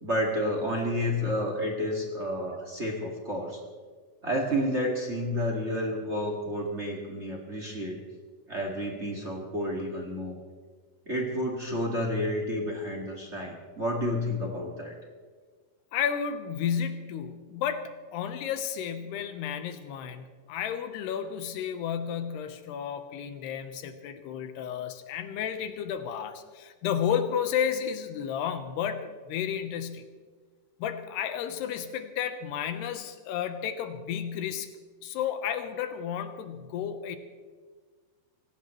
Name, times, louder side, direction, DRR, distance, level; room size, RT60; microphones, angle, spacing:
voice 1, 0.0-3.6 4.2-7.9 8.5-10.3 11.0-14.9, equal, 25° right, 0 dB, 1.6 m, -30 dB
voice 2, 15.9-30.1 30.8-34.7 35.0-37.2, left 8 dB, 85° left, 8 dB, 3.2 m, -32 dB
25.0 x 17.5 x 3.2 m, 1.5 s
omnidirectional pair, 4.6 m